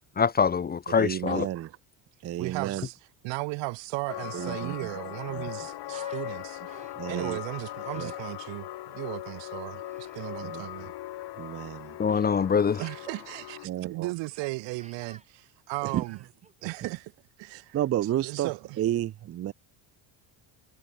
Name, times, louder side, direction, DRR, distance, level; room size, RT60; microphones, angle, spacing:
voice 1, 0.2-1.5 12.0-12.8, left 6 dB, 20° left, 0.5 m, -24 dB
voice 2, 1.0-1.7 2.2-2.9 4.3-4.9 5.3-5.4 7.0-7.4 8.0-8.1 10.4-10.9 11.4-12.0 13.6-14.1 15.8-16.0 16.8-16.9 17.5-18.5 18.8-19.5, right 12 dB, 35° right, 0.5 m, -31 dB
voice 3, 2.4-3.0 3.2-10.9 12.8-16.2 16.6-17.1 17.4-17.8 18.2-18.8, right 24 dB, 80° right, 1.4 m, -36 dB
sound 1, 4.1-13.7, left 15 dB, 65° left, 2.7 m, -39 dB
Human voice, 5.9-6.3 6.7-7.2 7.8-8.2 9.7-10.2 12.1-12.4 13.1-13.3 14.3-14.5 14.8-15.3 15.8-16.9, right 3 dB, 15° right, 3.0 m, -53 dB
cardioid pair, 110°, 43 cm